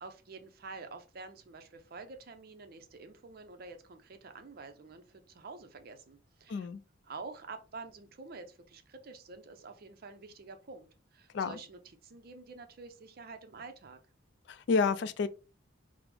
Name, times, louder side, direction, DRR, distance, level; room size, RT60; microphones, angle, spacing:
voice 1, 0.0-6.7 7.0-14.0, right 4 dB, 50° right, 0.5 m, -48 dB
voice 2, 6.5-6.8 11.3-11.6 14.5-15.3, left 4 dB, 60° left, 0.3 m, -29 dB
4.7 x 2.0 x 3.3 m
head